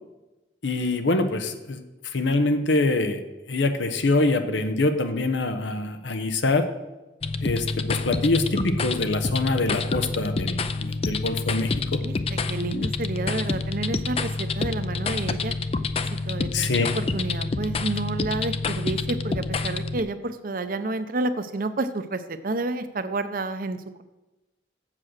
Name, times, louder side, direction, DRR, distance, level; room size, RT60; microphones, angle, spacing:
voice 1, 0.6-3.2 3.5-6.7 7.4-12.0 16.5-16.9, left 2 dB, 85° left, 7 dB, 0.9 m, -24 dB
sound 1, 7.2-20.0, left 3 dB, 35° left, 0.4 m, -28 dB
voice 2, 12.0-15.5 16.1-16.7 16.9-24.0, right 2 dB, 50° right, 11 dB, 0.6 m, -30 dB
7.6 x 7.5 x 6.4 m, 1.0 s
head